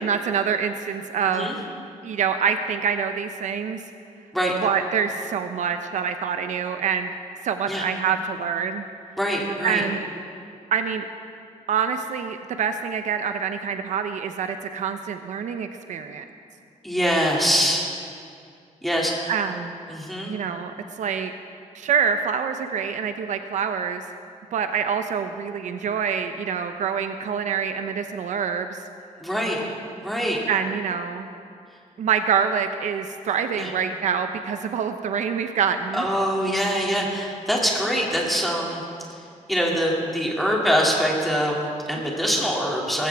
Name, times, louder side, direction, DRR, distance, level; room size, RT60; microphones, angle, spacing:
voice 1, 0.0-1.5 2.0-3.8 4.6-7.1 7.4-8.8 9.6-10.0 10.7-11.1 11.7-16.2 19.3-19.8 20.3-21.3 21.7-24.0 24.5-28.8 30.5-31.3 32.0-36.0, right 7 dB, 70° right, 8 dB, 0.7 m, -26 dB
voice 2, 4.3-4.7 7.7-7.9 9.2-9.8 16.8-17.8 18.8-19.3 19.9-20.3 29.2-29.7 30.0-30.4 33.6-33.7 35.9-38.8 39.1-39.2 39.5-43.1, equal, ahead, -3 dB, 2.5 m, -24 dB
19.5 x 15.5 x 3.5 m, 2.3 s
wide cardioid pair, 145°, 13 cm